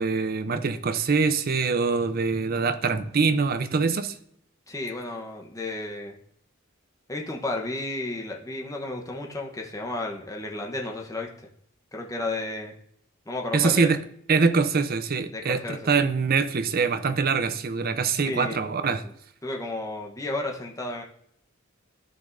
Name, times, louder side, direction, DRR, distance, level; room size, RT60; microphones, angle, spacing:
voice 1, 0.0-4.2 13.5-14.0 14.3-19.0, right 4 dB, 45° right, 11 dB, 0.6 m, -24 dB
voice 2, 4.7-6.2 7.1-11.5 11.9-12.7 13.3-13.9 15.3-16.1 18.2-19.1 19.4-21.0, left 2 dB, 15° left, 0 dB, 0.9 m, -33 dB
13.0 x 5.1 x 2.6 m, 0.68 s
head